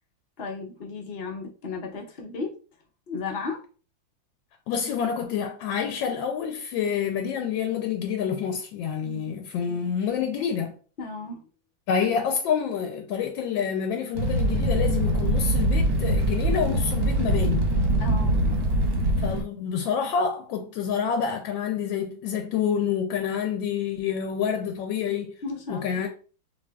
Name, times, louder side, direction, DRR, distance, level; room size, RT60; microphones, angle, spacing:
voice 1, 0.4-2.5 3.1-3.6 9.0-9.3 11.0-11.4 18.0-18.6 25.4-26.1, left 4 dB, 60° left, 0.6 m, -35 dB
voice 2, 4.7-10.7 11.9-17.7 19.2-25.3 25.7-26.1, left 7 dB, 80° left, 1.3 m, -28 dB
Fire, 14.1-19.4, right 1 dB, 80° right, 1.7 m, -23 dB
6.6 x 2.9 x 2.2 m
omnidirectional pair, 2.1 m